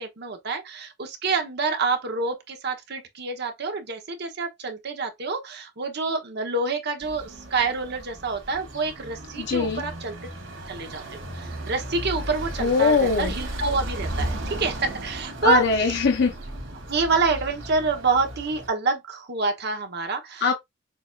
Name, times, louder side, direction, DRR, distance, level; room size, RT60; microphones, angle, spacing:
voice 1, 0.0-10.2 10.7-15.6 16.9-20.5, right 4 dB, 60° right, 1.0 m, -27 dB
sound 1, 7.0-18.7, right 1 dB, 75° right, 2.1 m, -35 dB
voice 2, 9.4-9.8 12.6-13.3 15.4-16.3 20.4-20.5, left 5 dB, 60° left, 0.6 m, -21 dB
6.7 x 2.6 x 2.4 m
head